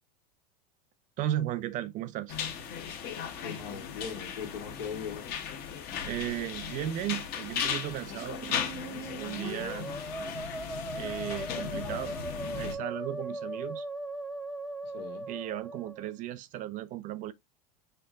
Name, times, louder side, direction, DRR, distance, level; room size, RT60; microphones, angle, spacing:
voice 1, 1.2-2.4 6.0-8.8 9.2-9.9 10.9-12.2 12.5-13.8 15.3-17.3, right 13 dB, 40° right, 0.4 m, -35 dB
sound 1, 2.3-12.8, left 7 dB, 45° left, 1.0 m, -37 dB
voice 2, 3.3-5.3 14.8-15.3, left 6 dB, 85° left, 1.5 m, -40 dB
Musical instrument, 8.1-16.1, right 1 dB, ahead, 0.9 m, -39 dB
4.4 x 2.2 x 3.7 m
supercardioid pair, 115°, 21 cm